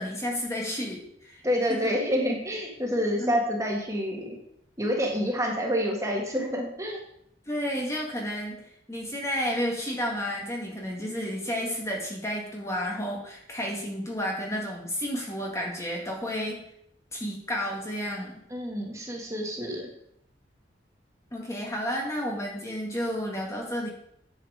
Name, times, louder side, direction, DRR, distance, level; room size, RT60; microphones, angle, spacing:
voice 1, 0.0-1.4 1.7-2.0 3.2-3.4 7.5-8.6 8.9-16.6 17.1-18.4 21.3-23.9, equal, 15° left, -1 dB, 1.7 m, -31 dB
voice 2, 1.4-4.4 4.8-7.0 18.5-19.9, equal, 15° right, 0 dB, 1.9 m, -28 dB
9.7 x 7.7 x 4.9 m, 0.72 s
head